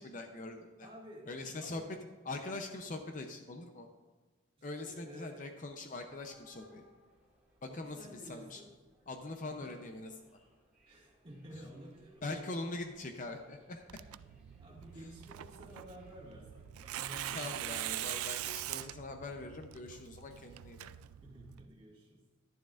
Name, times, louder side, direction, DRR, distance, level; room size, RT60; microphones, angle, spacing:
voice 1, 0.0-0.9 1.3-1.8 2.2-3.9 4.6-6.8 7.6-8.6 9.1-10.1 11.5-11.6 12.2-13.8 17.3-20.9, left 2 dB, 40° left, 5 dB, 0.6 m, -42 dB
voice 2, 0.8-2.0 4.6-5.6 7.7-8.7 9.4-9.8 10.8-12.6 14.6-17.6 21.2-22.2, equal, 25° right, -3 dB, 2.1 m, -52 dB
sound 1, 5.6-17.1, equal, 5° right, 2.1 m, -68 dB
Tearing, 13.9-21.7, right 13 dB, 90° right, 0.3 m, -43 dB
12.0 x 10.5 x 2.5 m, 1.3 s
head